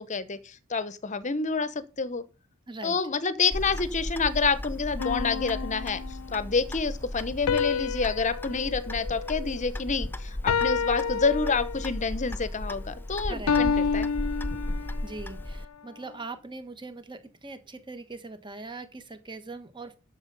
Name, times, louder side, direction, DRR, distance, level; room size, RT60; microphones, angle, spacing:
voice 1, 0.0-2.2 2.8-6.0 6.3-14.1, left 4 dB, 35° left, 0.9 m, -28 dB
voice 2, 2.7-3.0 13.3-13.7 14.8-20.0, right 3 dB, 20° right, 1.3 m, -41 dB
Clock, 3.5-15.6, left 1 dB, 10° left, 0.5 m, -35 dB
sound 1, 5.0-6.4 7.5-9.9 10.5-12.1 13.5-15.1, left 6 dB, 85° left, 0.4 m, -29 dB
11.5 x 6.8 x 5.3 m
head